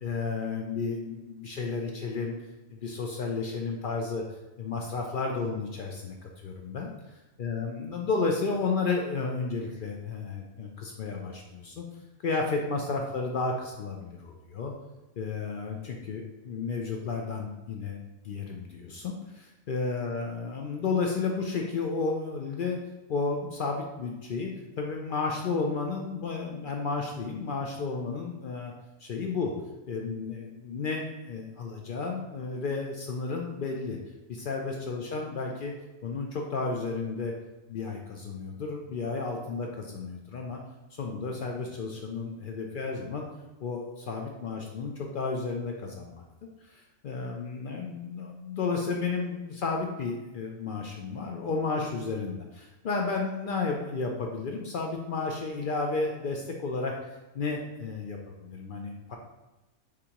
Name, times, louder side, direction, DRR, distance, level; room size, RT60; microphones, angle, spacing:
voice 1, 0.0-2.3 2.7-4.2 4.6-6.9 7.4-11.9 12.2-14.7 15.2-18.0 18.2-22.8 23.1-28.7 29.0-29.5 29.9-34.0 34.3-35.7 36.0-37.3 37.7-40.6 40.9-43.2 43.6-46.2 47.0-57.0 57.3-59.2, left 4 dB, 70° left, 1 dB, 0.5 m, -32 dB
4.9 x 3.6 x 2.9 m, 1.1 s
omnidirectional pair, 1.4 m